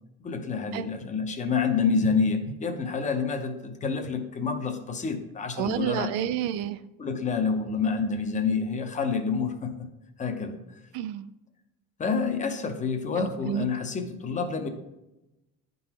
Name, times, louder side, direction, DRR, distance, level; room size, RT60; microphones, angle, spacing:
voice 1, 0.2-6.1 7.0-9.9 10.2-10.6 12.0-14.7, left 5 dB, 20° left, 6 dB, 0.6 m, -28 dB
voice 2, 5.6-6.8 10.9-11.3 13.2-13.7, right 11 dB, 75° right, 14 dB, 0.5 m, -29 dB
10.0 x 3.9 x 2.9 m, 0.95 s
cardioid pair, 140°, 36 cm